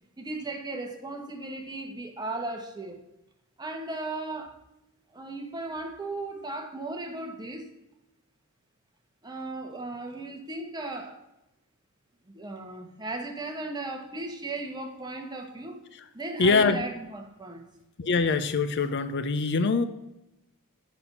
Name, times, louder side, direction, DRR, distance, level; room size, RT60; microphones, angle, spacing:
voice 1, 0.2-3.0 3.6-4.6 5.1-7.7 9.2-11.2 12.3-15.8 16.1-17.6, right 2 dB, 20° right, 2 dB, 1.2 m, -36 dB
voice 2, 16.4-16.8 18.0-19.9, left 4 dB, 50° left, 11 dB, 0.5 m, -23 dB
7.7 x 6.3 x 5.4 m, 0.92 s
head